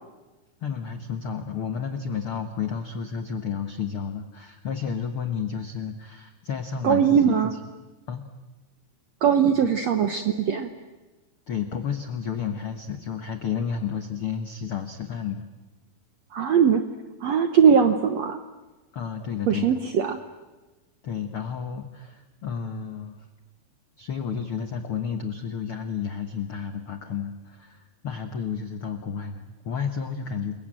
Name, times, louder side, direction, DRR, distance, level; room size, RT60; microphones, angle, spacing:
voice 1, 0.6-7.4 8.1-8.3 9.5-9.7 11.5-15.4 18.9-19.8 21.0-23.3 24.0-30.5, left 7 dB, 70° left, 7 dB, 1.2 m, -31 dB
voice 2, 6.8-7.5 9.2-10.7 16.3-16.8 17.2-18.4 19.5-20.2, right 7 dB, 75° right, 7 dB, 1.6 m, -20 dB
28.5 x 22.0 x 8.9 m, 1.2 s
omnidirectional pair, 4.4 m